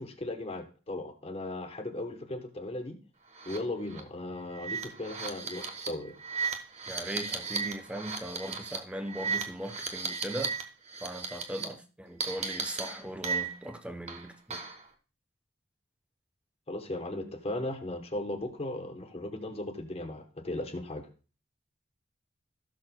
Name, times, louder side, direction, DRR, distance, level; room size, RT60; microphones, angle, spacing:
voice 1, 0.0-3.0 3.5-6.2 16.7-21.0, left 1 dB, 30° left, 1.0 m, -37 dB
sound 1, 3.4-3.6 3.9-4.0 4.5-10.6 10.9-11.6 12.2-13.7 14.1-14.8, right 5 dB, 35° right, 1.0 m, -35 dB
voice 2, 6.9-10.5 11.0-14.6, right 1 dB, 5° right, 0.7 m, -39 dB
16.5 x 6.3 x 2.2 m
head